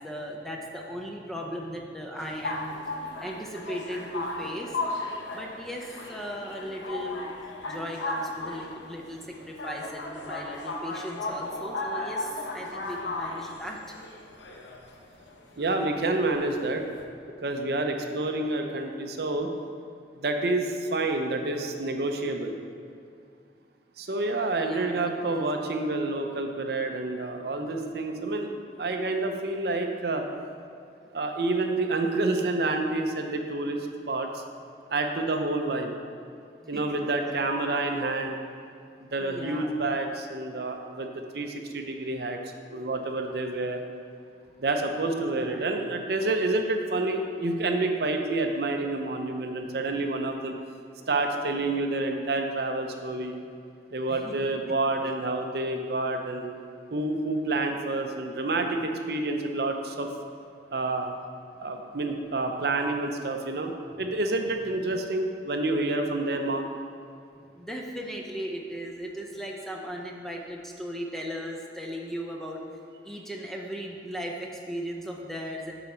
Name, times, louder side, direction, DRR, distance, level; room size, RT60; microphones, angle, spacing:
voice 1, 0.0-2.8 3.2-4.8 5.3-7.3 7.7-14.0 24.5-25.5 27.6-27.9 36.7-37.0 39.2-39.8 45.1-45.6 54.1-54.5 64.8-64.9 67.5-72.6 73.0-75.7, equal, ahead, -1 dB, 0.6 m, -37 dB
sound 1, 2.2-17.0, left 2 dB, 85° left, 0.8 m, -36 dB
voice 2, 15.6-16.8 17.4-19.5 20.2-22.5 24.0-28.5 28.8-30.2 31.1-33.8 34.1-34.4 34.9-35.9 36.7-38.4 39.1-42.4 42.7-43.8 44.6-50.6 51.1-53.3 53.9-56.5 56.9-60.1 60.7-61.1 61.6-66.6, right 2 dB, 60° right, 4 dB, 0.6 m, -28 dB
7.7 x 5.8 x 4.3 m, 2.4 s
head